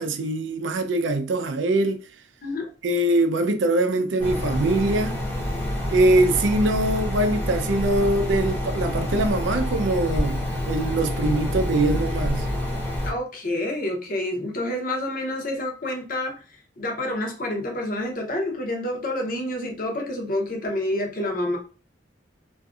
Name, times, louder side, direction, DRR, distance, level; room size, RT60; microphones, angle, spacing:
voice 1, 0.0-2.0 2.8-5.1 5.9-12.5, right 2 dB, 75° right, 0.4 m, -23 dB
sound 1, 4.2-13.1, left 1 dB, 10° left, 0.6 m, -27 dB
voice 2, 13.0-21.6, left 1 dB, 45° left, 0.7 m, -28 dB
2.6 x 2.4 x 2.3 m
head